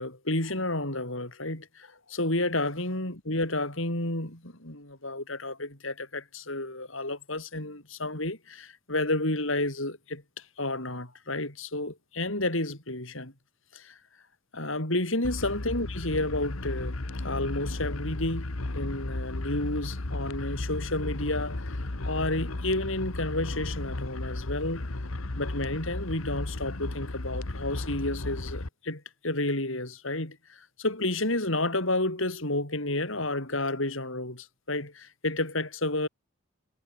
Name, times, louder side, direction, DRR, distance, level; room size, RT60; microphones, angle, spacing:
voice 1, 0.0-13.3 13.7-14.0 14.5-17.0 17.2-24.8 25.4-36.1, left 2 dB, 65° left, 7.5 m, -31 dB
sound 1, 15.2-28.7, left 2 dB, 85° left, 1.6 m, -34 dB
head